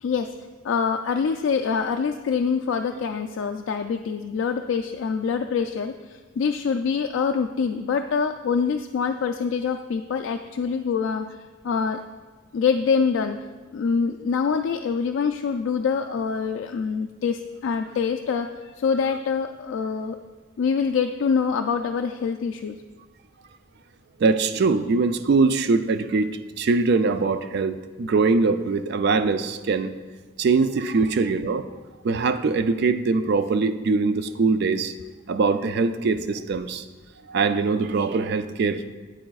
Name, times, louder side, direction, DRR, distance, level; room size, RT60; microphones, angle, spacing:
voice 1, 0.6-11.4 11.6-12.0 12.5-13.4 13.7-20.2 20.6-22.8, left 6 dB, 65° left, 5 dB, 0.3 m, -25 dB
voice 2, 24.2-29.9 30.4-31.6 32.0-34.9 35.3-36.8 37.3-38.8, right 4 dB, 55° right, 11 dB, 0.3 m, -22 dB
8.8 x 8.7 x 2.3 m, 1.3 s
head